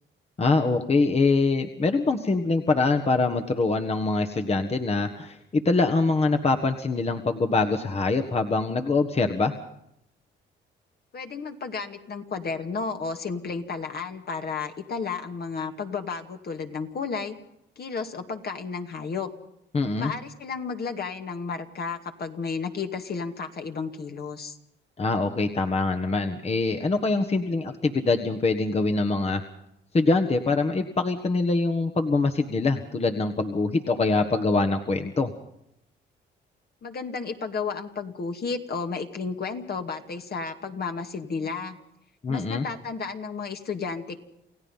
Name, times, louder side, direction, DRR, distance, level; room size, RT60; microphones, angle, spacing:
voice 1, 0.4-9.5 19.7-20.1 25.0-29.4 29.9-35.3 42.2-42.6, left 3 dB, 30° left, 5 dB, 1.5 m, -24 dB
voice 2, 11.1-17.4 17.8-19.3 20.0-24.6 36.8-41.8 42.3-44.2, left 5 dB, 50° left, 5 dB, 2.3 m, -32 dB
29.0 x 16.0 x 5.6 m, 0.77 s
cardioid pair, 90°, 20 cm